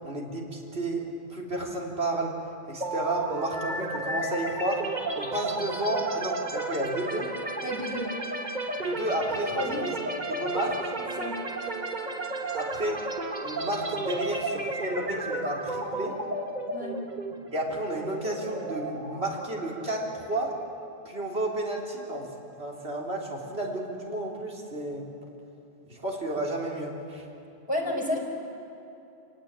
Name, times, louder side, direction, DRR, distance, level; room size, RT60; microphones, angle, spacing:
voice 1, 0.0-2.4 2.7-4.9 5.1-7.3 8.8-9.9 10.3-10.9 12.5-13.1 13.4-16.2 17.5-20.5 21.1-22.3 22.6-25.1 25.9-27.2, right 1 dB, 85° right, -2 dB, 3.9 m, -32 dB
sound 1, 2.8-20.6, right 2 dB, 45° right, 1.6 m, -33 dB
voice 2, 7.6-8.1 9.5-9.9 11.0-11.4 16.7-17.0 27.7-28.2, left 1 dB, 25° left, 0 dB, 4.6 m, -31 dB
28.0 x 18.5 x 8.9 m, 2.8 s
omnidirectional pair, 1.0 m